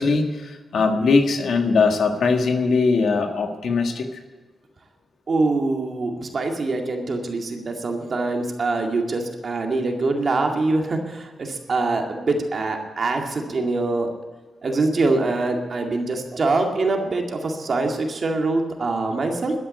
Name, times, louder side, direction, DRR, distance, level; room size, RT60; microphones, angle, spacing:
voice 1, 0.0-4.1, left 4 dB, 75° left, 5 dB, 1.8 m, -20 dB
voice 2, 5.3-14.1 14.6-19.5, right 3 dB, 50° right, 2 dB, 2.2 m, -24 dB
13.0 x 9.9 x 8.2 m, 1.3 s
wide cardioid pair, 105°, 0 cm